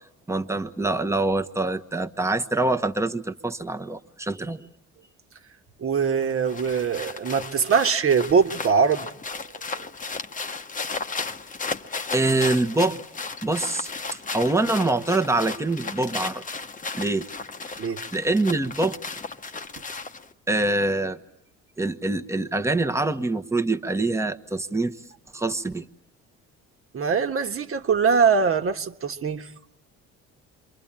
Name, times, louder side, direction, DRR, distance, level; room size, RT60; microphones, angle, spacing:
voice 1, 0.3-4.6 12.1-13.0 13.4-16.4 17.0-17.3 18.1-19.0 20.5-21.2 21.8-25.0 25.3-25.8, right 2 dB, 10° right, 1.2 m, -25 dB
voice 2, 5.8-9.1 17.8-18.0 26.9-29.5, right 6 dB, 45° right, 1.6 m, -22 dB
sound 1, 6.2-20.3, left 4 dB, 25° left, 1.0 m, -35 dB
28.5 x 23.5 x 8.9 m
supercardioid pair, 80°, 32 cm